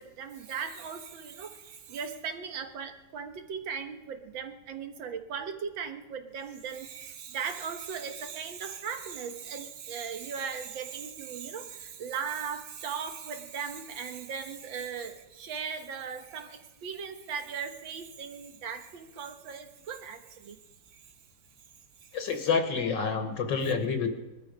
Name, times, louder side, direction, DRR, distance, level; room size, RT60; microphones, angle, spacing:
voice 1, 0.0-20.6 20.9-21.0, right 6 dB, 80° right, 7 dB, 1.9 m, -38 dB
voice 2, 22.1-24.1, left 5 dB, 70° left, 6 dB, 1.8 m, -28 dB
21.0 x 12.5 x 5.0 m, 1.1 s
omnidirectional pair, 2.1 m